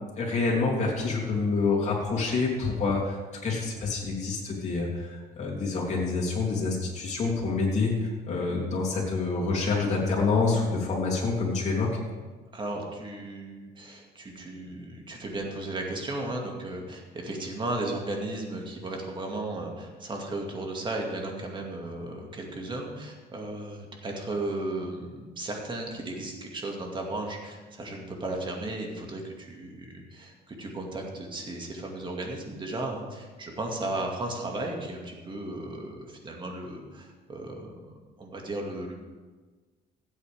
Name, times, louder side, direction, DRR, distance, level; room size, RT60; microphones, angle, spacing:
voice 1, 0.2-11.9, left 4 dB, 40° left, -3 dB, 3.4 m, -27 dB
voice 2, 12.5-37.7 38.2-38.9, right 2 dB, 30° right, 1 dB, 2.2 m, -35 dB
15.5 x 8.4 x 3.6 m, 1.3 s
cardioid pair, 110°, 17 cm